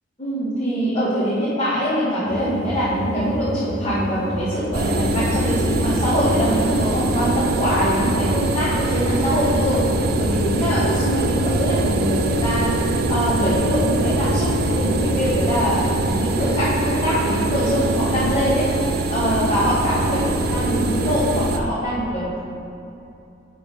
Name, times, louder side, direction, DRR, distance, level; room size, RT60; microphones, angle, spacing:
voice 1, 0.2-9.8 10.2-12.7 13.1-14.5 14.8-18.7 19.1-22.4, equal, 30° left, -11 dB, 1.7 m, -23 dB
sound 1, 2.2-15.2, equal, 60° left, 1.8 m, -29 dB
sound 2, 4.7-21.6, right 2 dB, 55° right, 0.5 m, -23 dB
7.7 x 4.9 x 5.6 m, 2.7 s
head